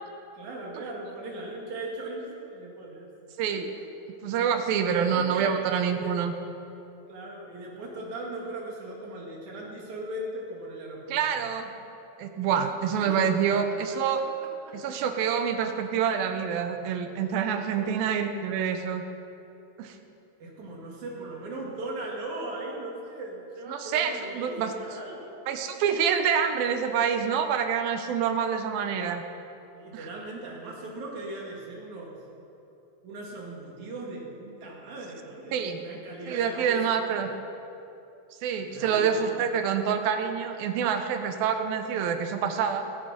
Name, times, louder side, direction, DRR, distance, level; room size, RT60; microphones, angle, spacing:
voice 1, 0.3-3.1 3.5-3.9 4.8-5.5 6.0-6.2 7.1-11.2 12.6-12.7 13.0-13.6 14.7-14.8 17.7-18.0 20.4-25.3 29.7-32.2 33.0-36.8 37.1-37.2 38.7-39.5, right 2 dB, 55° right, -2 dB, 3.4 m, -38 dB
voice 2, 4.2-6.3 11.1-11.7 12.2-14.2 14.7-19.0 19.8-20.0 23.7-24.7 25.5-29.2 29.9-30.1 35.5-35.8 36.3-37.3 38.4-42.9, right 7 dB, 80° right, 7 dB, 2.5 m, -27 dB
20.0 x 8.6 x 5.1 m, 2.9 s
omnidirectional pair, 4.3 m